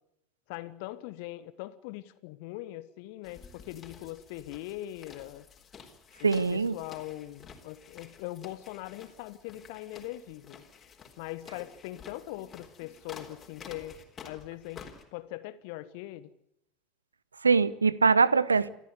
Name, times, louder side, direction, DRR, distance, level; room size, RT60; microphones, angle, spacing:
voice 1, 0.5-5.4 6.2-10.6 11.2-16.3, left 16 dB, 55° left, 15 dB, 1.3 m, -41 dB
sound 1, 3.2-15.0, left 6 dB, 30° left, 3.9 m, -51 dB
voice 2, 6.2-6.7 17.4-18.7, right 4 dB, 80° right, 21 dB, 0.8 m, -23 dB
28.0 x 13.0 x 9.6 m, 0.79 s
figure-of-eight pair, 75°, 0 cm